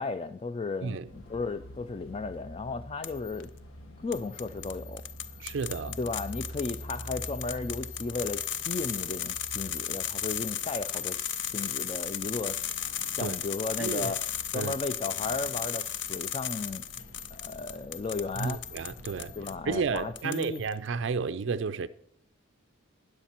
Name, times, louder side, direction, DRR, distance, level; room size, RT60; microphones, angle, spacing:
voice 1, 0.0-3.5 4.0-5.0 6.0-12.7 13.1-14.2 14.5-16.8 17.3-18.6 19.4-20.6, left 3 dB, 25° left, 0.3 m, -35 dB
sound 1, 1.0-20.1, equal, 80° left, 1.6 m, -47 dB
sound 2, 3.0-3.4 4.1-19.5 20.0-20.7, left 9 dB, 60° left, 0.7 m, -35 dB
voice 2, 5.4-6.0 13.2-13.4 13.8-14.1 14.5-14.8 18.4-19.3 19.7-21.9, right 5 dB, 60° right, 0.4 m, -32 dB
13.0 x 9.9 x 4.4 m
head